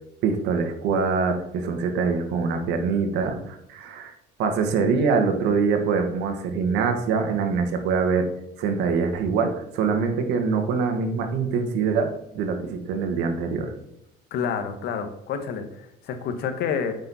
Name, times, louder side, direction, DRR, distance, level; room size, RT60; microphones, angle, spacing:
voice 1, 0.2-4.1 4.4-8.3 8.6-13.7, right 5 dB, 85° right, 5 dB, 1.6 m, -24 dB
voice 2, 14.3-17.0, left 6 dB, 75° left, 7 dB, 1.3 m, -29 dB
9.0 x 5.4 x 4.2 m, 0.82 s
cardioid pair, 110°, 17 cm